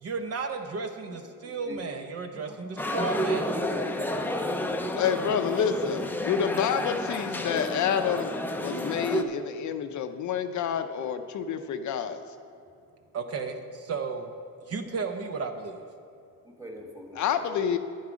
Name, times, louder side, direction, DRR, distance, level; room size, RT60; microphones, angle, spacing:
voice 1, 0.0-3.7 4.7-4.8 5.6-5.9 13.1-14.3 14.7-15.8, right 4 dB, 45° right, 6 dB, 0.8 m, -34 dB
sound 1, 2.8-9.2, left 1 dB, 5° left, 0.5 m, -30 dB
voice 2, 3.0-3.4 3.7-4.9 16.4-17.2, equal, 10° right, 1 dB, 1.6 m, -43 dB
voice 3, 5.0-8.3 8.6-12.2 17.2-17.8, left 8 dB, 55° left, 8 dB, 0.6 m, -28 dB
10.0 x 9.4 x 5.1 m, 2.5 s
cardioid pair, 130°, 34 cm